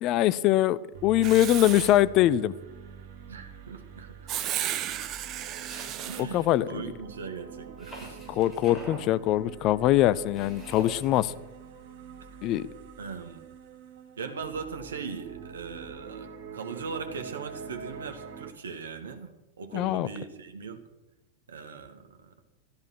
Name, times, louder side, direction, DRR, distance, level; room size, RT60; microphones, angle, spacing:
voice 1, 0.0-2.5 6.2-6.8 8.4-11.3 12.4-12.7 19.7-20.1, left 13 dB, 40° left, 17 dB, 0.6 m, -23 dB
sound 1, 0.9-18.5, right 6 dB, 50° right, 1.8 m, -46 dB
Writing, 1.2-2.0 4.3-6.2, right 11 dB, 35° right, 1.0 m, -33 dB
voice 2, 3.3-4.2 6.1-8.4 12.4-12.5 13.0-13.4 14.2-20.8 21.5-22.3, right 5 dB, 65° right, 7 dB, 1.9 m, -39 dB
sound 2, 5.7-6.6 7.8-9.1 10.3-11.4, right 1 dB, 10° left, 6.1 m, -45 dB
14.0 x 13.0 x 6.2 m, 1.0 s
figure-of-eight pair, 90°, 0 cm